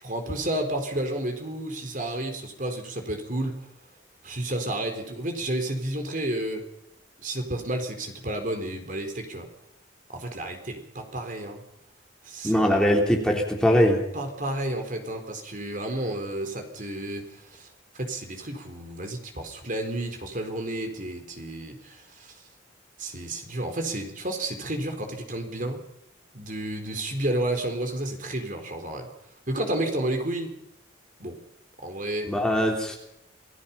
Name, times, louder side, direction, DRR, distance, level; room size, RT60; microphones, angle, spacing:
voice 1, 0.0-3.6 4.2-6.6 7.2-9.5 10.1-11.6 12.2-12.6 14.1-17.7 17.9-22.4 23.0-25.8 26.3-29.1 29.5-30.5 31.2-31.4 31.8-32.3, right 1 dB, 40° right, 5 dB, 4.0 m, -31 dB
voice 2, 12.4-14.0 32.3-33.0, equal, 5° left, 0 dB, 3.4 m, -21 dB
28.5 x 19.0 x 5.8 m, 0.79 s
head